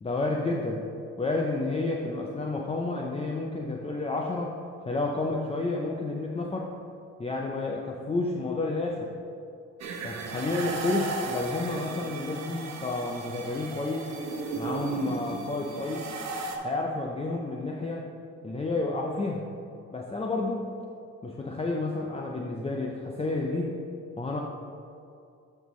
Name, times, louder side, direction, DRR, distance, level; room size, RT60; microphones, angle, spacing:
voice 1, 0.0-0.8 1.2-4.5 4.8-6.7 7.2-9.1 10.0-14.1 14.5-16.1 16.6-18.1 18.4-19.5 19.9-20.7 21.2-23.7 24.2-24.4, left 2 dB, 20° left, 0 dB, 0.6 m, -30 dB
sound 1, 9.8-16.6, right 3 dB, 60° right, 1.0 m, -35 dB
9.9 x 5.5 x 3.2 m, 2.5 s
cardioid pair, 90°, 30 cm